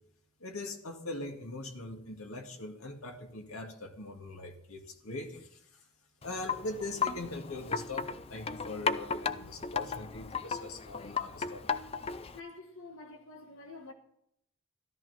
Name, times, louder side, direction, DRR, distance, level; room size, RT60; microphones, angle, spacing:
voice 1, 0.4-5.9 6.2-11.8, left 2 dB, 90° left, 2.1 m, -41 dB
Wind chime, 6.2-12.4, left 5 dB, 25° left, 0.5 m, -35 dB
voice 2, 12.3-13.9, left 3 dB, 75° left, 1.5 m, -48 dB
13.5 x 12.5 x 4.3 m
head